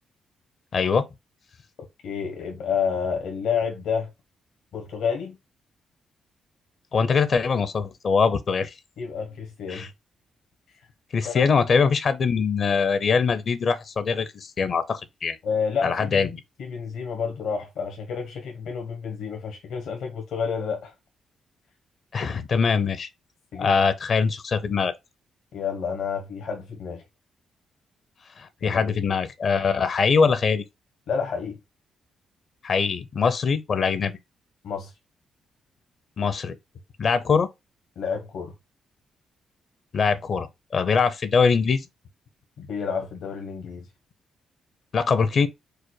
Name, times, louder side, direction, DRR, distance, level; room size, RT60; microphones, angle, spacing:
voice 1, 0.7-1.1 6.9-8.7 9.7-9.9 11.1-15.4 15.8-16.4 22.1-23.1 23.6-24.9 28.4-30.6 32.6-34.2 36.2-36.6 37.0-37.5 39.9-41.8 44.9-45.5, left 5 dB, 55° left, 0.6 m, -22 dB
voice 2, 2.0-4.1 4.7-5.4 9.0-9.9 11.2-11.5 15.4-16.3 16.6-20.9 23.5-23.8 25.5-27.0 28.6-28.9 31.1-31.6 34.6-34.9 38.0-38.5 42.6-43.9, left 6 dB, 80° left, 1.2 m, -29 dB
4.8 x 2.1 x 4.6 m
cardioid pair, 80°, 0 cm